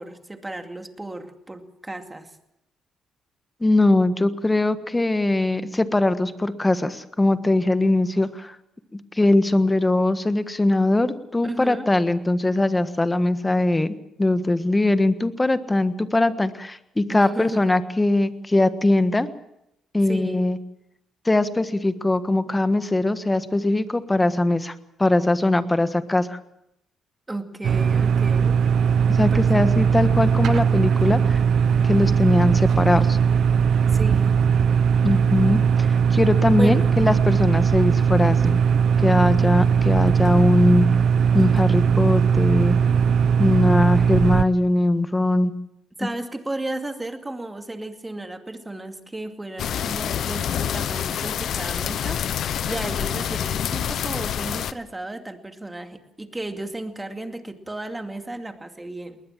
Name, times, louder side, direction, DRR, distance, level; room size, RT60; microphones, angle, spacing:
voice 1, 0.0-2.3 11.4-11.9 17.1-17.6 20.1-20.4 27.3-28.6 29.2-29.8 33.9-34.4 36.6-37.0 46.0-52.2 52.6-59.2, right 2 dB, 15° right, 6 dB, 2.4 m, -34 dB
voice 2, 3.6-8.5 9.1-19.3 19.9-20.6 21.2-24.7 25.0-26.4 29.1-31.4 31.8-33.2 35.0-35.6 35.9-38.6 39.0-40.9 41.3-42.8 43.4-45.5, left 2 dB, 15° left, 11 dB, 1.4 m, -21 dB
sound 1, 27.6-44.4, right 7 dB, 65° right, 0.8 m, -19 dB
sound 2, 49.6-54.7, left 9 dB, 70° left, 1.0 m, -27 dB
20.5 x 19.5 x 7.5 m, 0.82 s
cardioid pair, 90°, 0 cm